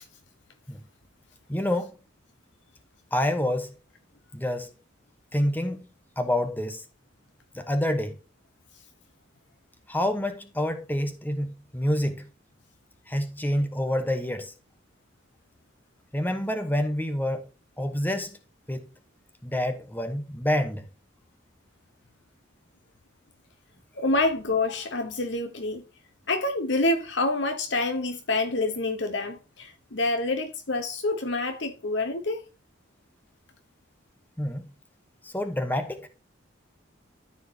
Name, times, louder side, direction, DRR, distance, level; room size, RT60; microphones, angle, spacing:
voice 1, 1.5-1.9 3.1-3.7 4.3-4.7 5.3-5.9 6.2-6.8 7.5-8.2 9.9-12.3 13.1-14.5 16.1-17.5 17.8-18.4 18.7-18.8 19.4-20.8 34.4-34.6 35.2-36.1, left 1 dB, 10° left, 1.0 m, -27 dB
voice 2, 24.0-25.8 26.3-32.5, left 2 dB, 60° left, 1.0 m, -27 dB
13.0 x 4.7 x 2.8 m
head